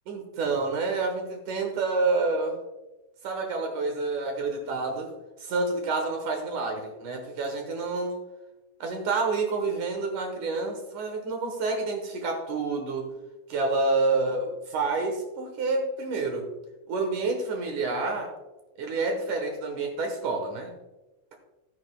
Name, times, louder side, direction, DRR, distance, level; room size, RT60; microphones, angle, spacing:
voice 1, 0.1-2.6 3.2-5.1 5.4-8.2 8.8-13.1 13.5-16.5 16.9-18.3 18.8-20.7, right 3 dB, 65° right, 4 dB, 2.1 m, -28 dB
14.5 x 9.9 x 2.3 m, 1.0 s
omnidirectional pair, 4.9 m